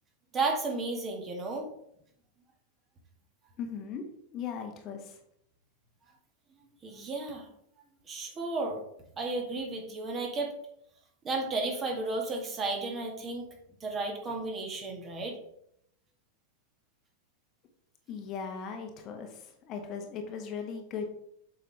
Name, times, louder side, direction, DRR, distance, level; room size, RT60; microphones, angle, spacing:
voice 1, 0.3-1.7 6.8-7.5 8.1-8.8 9.2-10.5 11.2-13.5 13.8-15.4, right 3 dB, 25° right, 1 dB, 1.8 m, -33 dB
voice 2, 3.6-4.0 4.3-5.2 18.1-21.1, left 6 dB, 35° left, 4 dB, 1.1 m, -38 dB
7.6 x 5.4 x 3.3 m, 0.73 s
figure-of-eight pair, 90°, 0 cm